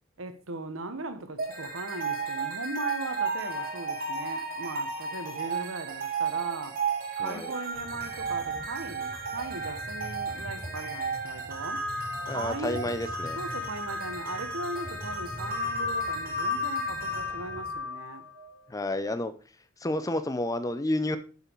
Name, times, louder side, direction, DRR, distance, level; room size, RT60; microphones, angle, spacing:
voice 1, 0.2-6.8 7.2-11.8 12.3-13.0 13.4-18.3, right 2 dB, 70° right, 1.1 m, -39 dB
sound 1, 1.4-18.5, right 2 dB, 45° right, 1.9 m, -33 dB
voice 2, 7.2-7.5 12.3-13.4 18.7-19.3 19.8-21.2, left 1 dB, 15° left, 0.6 m, -30 dB
sound 2, 7.7-17.8, equal, 30° left, 2.2 m, -45 dB
8.0 x 5.6 x 4.6 m
head